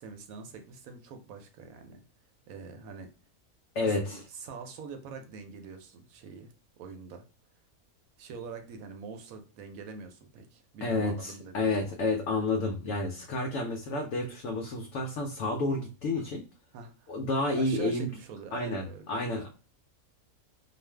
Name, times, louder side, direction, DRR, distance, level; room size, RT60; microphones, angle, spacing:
voice 1, 0.0-2.0 2.5-3.1 3.8-6.5 6.8-7.2 8.2-12.0 16.1-16.3 16.7-17.2 17.5-19.3, right 5 dB, 75° right, 6 dB, 1.0 m, -44 dB
voice 2, 3.7-4.2 10.8-16.4 17.1-18.1 18.5-19.5, left 2 dB, 70° left, 1 dB, 0.9 m, -30 dB
2.5 x 2.4 x 3.2 m, 0.36 s
omnidirectional pair, 1.5 m